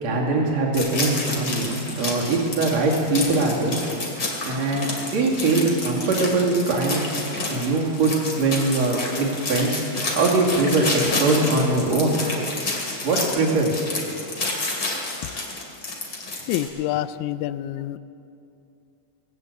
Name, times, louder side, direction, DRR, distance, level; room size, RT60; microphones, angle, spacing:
voice 1, 0.0-3.8 4.4-7.1 7.5-12.4 13.0-14.1, right 2 dB, 65° right, -2 dB, 3.5 m, -22 dB
sound 1, 0.7-16.7, left 2 dB, 35° left, 2.5 m, -29 dB
voice 2, 16.5-18.0, left 13 dB, 90° left, 14 dB, 2.0 m, -27 dB
19.5 x 8.9 x 7.8 m, 2.6 s
omnidirectional pair, 3.3 m